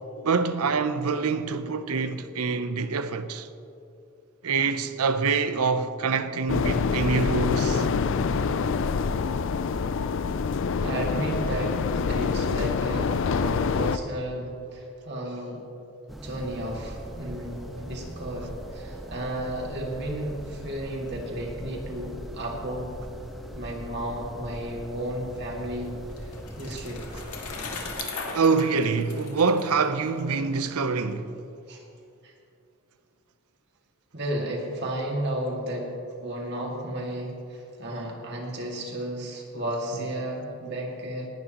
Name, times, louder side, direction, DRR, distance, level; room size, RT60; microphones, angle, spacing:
voice 1, 0.2-3.5 4.4-7.9 28.0-31.3, right 4 dB, 80° right, 0.6 m, -25 dB
sound 1, 6.5-14.0, left 5 dB, 55° left, 0.4 m, -26 dB
voice 2, 10.8-15.6 16.2-22.9 23.5-27.0 31.7-31.8 32.2-32.3 34.1-41.3, right 1 dB, 50° right, 2.1 m, -33 dB
sound 2, 16.1-28.0, equal, ahead, 1.0 m, -40 dB
Bicycle, 25.8-30.6, left 4 dB, 85° left, 2.0 m, -38 dB
19.0 x 11.5 x 3.0 m
head